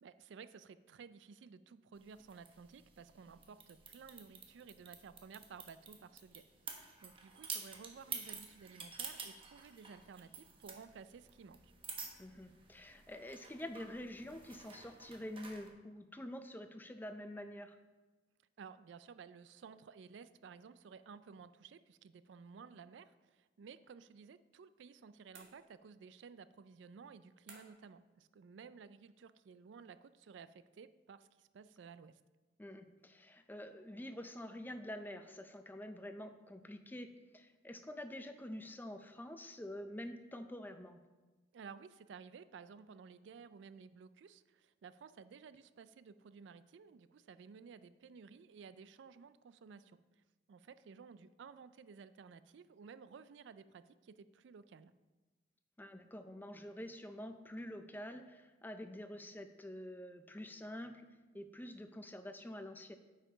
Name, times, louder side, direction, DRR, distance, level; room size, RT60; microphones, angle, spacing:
voice 1, 0.0-11.7 18.6-32.2 41.5-50.0 50.5-54.9, right 6 dB, 70° right, 14 dB, 0.3 m, -55 dB
sound 1, 2.0-15.7, right 5 dB, 30° right, 0.9 m, -50 dB
voice 2, 12.2-17.8 32.6-41.0 55.8-61.1 61.3-63.0, left 1 dB, 10° left, 8 dB, 0.4 m, -47 dB
sound 2, 25.3-26.1 27.5-28.0, right 3 dB, 90° right, 1.7 m, -59 dB
8.3 x 5.6 x 4.9 m, 1.2 s
head